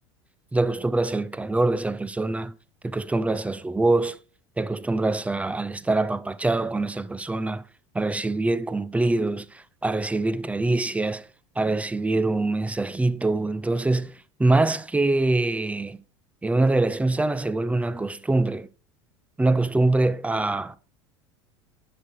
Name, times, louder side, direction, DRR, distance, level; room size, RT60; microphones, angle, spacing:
voice 1, 0.5-2.5 2.8-4.2 4.6-7.6 7.9-11.3 11.6-14.1 14.4-16.0 16.4-18.7 19.4-20.8, right 2 dB, 10° right, 0.6 m, -24 dB
10.0 x 6.3 x 4.5 m
hypercardioid pair, 75°, 16 cm